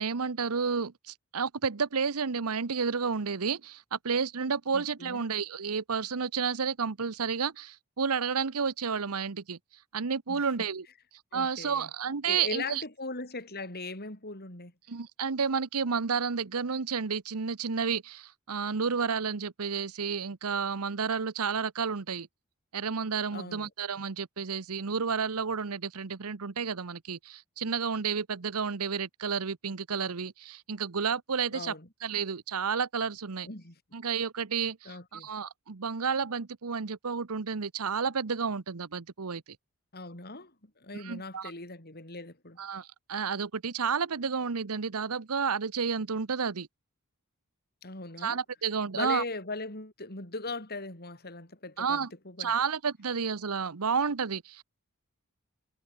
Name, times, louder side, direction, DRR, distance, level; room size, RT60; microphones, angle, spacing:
voice 1, 0.0-9.6 9.9-10.9 11.3-12.8 14.9-22.3 22.7-31.8 32.0-33.5 33.9-39.4 40.9-41.5 42.6-46.7 48.2-49.2 51.8-52.1 52.4-54.6, right 6 dB, 80° right, 0.9 m, -31 dB
voice 2, 4.7-5.2 10.3-10.7 11.3-11.9 12.3-14.7 23.3-23.7 31.5-31.9 33.4-33.8 34.9-35.3 39.9-42.6 47.8-48.4 48.9-52.5, left 3 dB, 45° left, 5.5 m, -39 dB
head